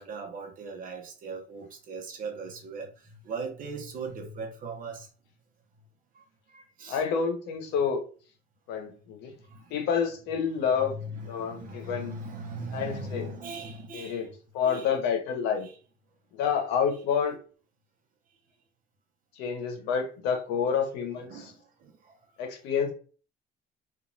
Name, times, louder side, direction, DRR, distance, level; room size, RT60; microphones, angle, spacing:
voice 1, 0.0-2.9 3.2-5.1 6.2-6.3 6.5-7.0 9.5-9.6 10.8-14.2 14.6-14.9 15.6-15.7 21.3-21.5, right 3 dB, 55° right, 0.8 m, -39 dB
voice 2, 6.9-8.0 8.7-9.3 9.7-11.0 11.2-12.2 12.7-13.2 13.9-14.3 14.5-15.7 16.3-17.4 19.4-21.5 22.4-22.9, left 7 dB, 90° left, 0.8 m, -28 dB
2.9 x 2.4 x 2.6 m
cardioid pair, 110°, 17 cm